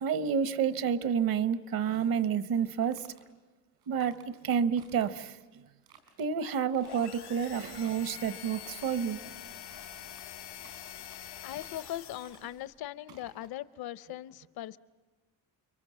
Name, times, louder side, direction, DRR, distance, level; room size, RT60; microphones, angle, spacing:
voice 1, 0.0-3.1 3.9-5.6 6.2-9.3, right 7 dB, 65° right, 15 dB, 1.0 m, -30 dB
sound 1, 2.6-3.2 3.8-4.3 4.8-5.4 5.8-6.3 6.7-7.2 7.7-8.1 8.5-9.2 9.7-10.3 10.6-11.2 11.5-11.9 12.2-12.6 13.1-13.5, right 6 dB, 85° right, 4.7 m, -59 dB
sound 2, 6.8-12.6, left 10 dB, 90° left, 3.4 m, -45 dB
voice 2, 11.4-14.8, left 13 dB, 70° left, 18 dB, 0.8 m, -40 dB
30.0 x 23.0 x 7.5 m, 1.3 s
cardioid pair, 150°, 38 cm